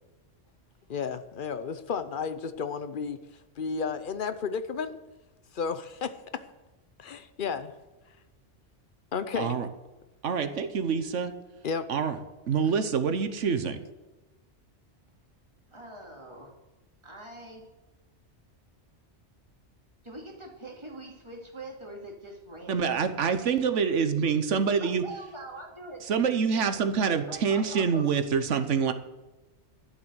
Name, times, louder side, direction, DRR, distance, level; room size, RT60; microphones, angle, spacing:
voice 1, 0.9-3.2 3.6-5.0 5.5-6.4 7.0-7.7 9.1-9.6 11.6-11.9, left 6 dB, 50° left, 12 dB, 0.9 m, -32 dB
voice 2, 9.4-9.7 10.2-11.3 11.9-12.2 12.5-13.8 22.7-25.0 26.1-28.9, right 6 dB, 85° right, 9 dB, 1.3 m, -26 dB
voice 3, 15.7-16.5 17.0-17.7 20.0-22.9 24.8-26.0 26.7-28.0, right 1 dB, 25° right, 0 dB, 2.4 m, -43 dB
12.0 x 7.2 x 8.1 m, 1.1 s
omnidirectional pair, 1.2 m